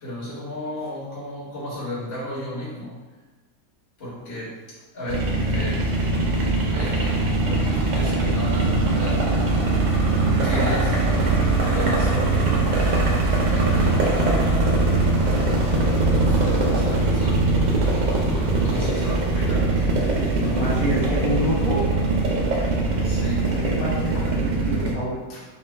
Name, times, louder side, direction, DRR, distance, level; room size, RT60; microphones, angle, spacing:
voice 1, 0.0-3.0 4.0-4.6 4.9-5.9 6.7-9.7 10.4-11.1 11.6-12.5 13.4-14.8 15.9-17.5 18.6-19.9 23.0-23.5 24.1-24.4 25.3-25.4, left 1 dB, 45° left, -8 dB, 1.4 m, -34 dB
sound 1, 5.1-24.9, right 2 dB, 75° right, 0.4 m, -21 dB
voice 2, 15.3-15.6 20.5-21.8 23.5-25.2, left 1 dB, 70° left, -8 dB, 1.7 m, -28 dB
5.4 x 2.2 x 3.2 m, 1.3 s
omnidirectional pair, 1.5 m